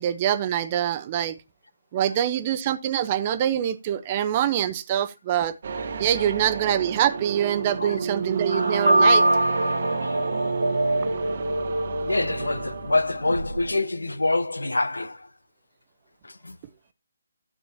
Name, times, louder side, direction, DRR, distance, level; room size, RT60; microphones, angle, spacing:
voice 1, 0.0-1.4 1.9-5.5 6.0-9.2, right 10 dB, 25° right, 0.9 m, -24 dB
sound 1, 5.6-13.5, right 5 dB, 45° right, 1.2 m, -30 dB
sound 2, 8.5-13.8, right 1 dB, 85° right, 1.8 m, -24 dB
voice 2, 12.0-15.3 16.2-16.6, left 2 dB, 70° left, 1.1 m, -26 dB
12.5 x 8.5 x 2.9 m
figure-of-eight pair, 145°, 0 cm